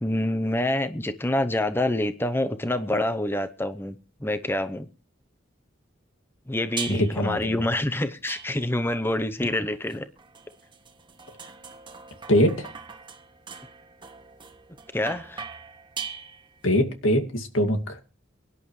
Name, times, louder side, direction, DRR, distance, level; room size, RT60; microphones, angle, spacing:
voice 1, 0.0-4.9 6.5-10.1 14.9-15.5, left 1 dB, 10° left, 0.7 m, -27 dB
sound 1, 6.8-7.3 8.3-8.9 9.9-16.7, right 6 dB, 25° right, 1.3 m, -40 dB
voice 2, 6.9-7.4 12.3-12.7 16.6-18.0, equal, 80° left, 2.3 m, -22 dB
23.0 x 11.0 x 3.2 m
head